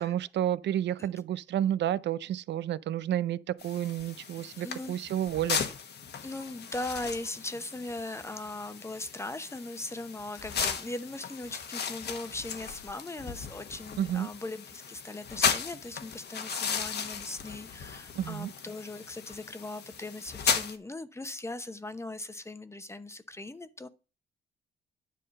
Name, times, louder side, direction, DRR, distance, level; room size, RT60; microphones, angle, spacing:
voice 1, 0.0-5.6 14.0-14.3 18.2-18.5, right 11 dB, 65° right, 0.5 m, -30 dB
sound 1, 3.6-20.8, left 6 dB, 55° left, 1.2 m, -36 dB
voice 2, 4.6-5.0 6.2-23.9, left 2 dB, 15° left, 0.9 m, -39 dB
10.0 x 3.7 x 6.5 m
cardioid pair, 90°, 20 cm